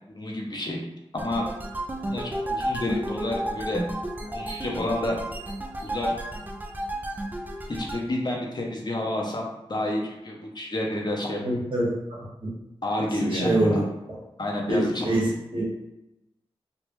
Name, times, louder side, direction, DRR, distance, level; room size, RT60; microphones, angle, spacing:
voice 1, 0.1-0.8 1.1-1.5 2.1-3.8 4.3-5.2 5.8-6.2 7.7-11.4 12.8-13.8 14.4-15.2, left 1 dB, 45° left, -1 dB, 0.7 m, -29 dB
sound 1, 1.2-8.0, right 1 dB, 15° right, 0.4 m, -32 dB
voice 2, 11.4-12.2 13.2-13.8 14.7-15.7, right 1 dB, 55° right, -6 dB, 1.5 m, -25 dB
3.4 x 2.4 x 3.1 m, 0.93 s
cardioid pair, 60°, 10 cm